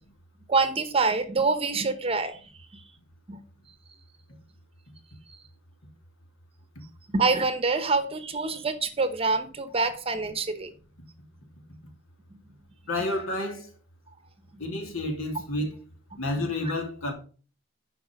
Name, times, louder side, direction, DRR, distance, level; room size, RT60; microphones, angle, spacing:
voice 1, 0.5-2.4 3.3-3.4 7.1-10.7 16.1-16.2, right 4 dB, 25° right, 1.0 m, -26 dB
voice 2, 12.9-13.7 14.6-15.8 16.2-17.1, left 2 dB, 65° left, 2.9 m, -30 dB
10.5 x 5.7 x 5.2 m
head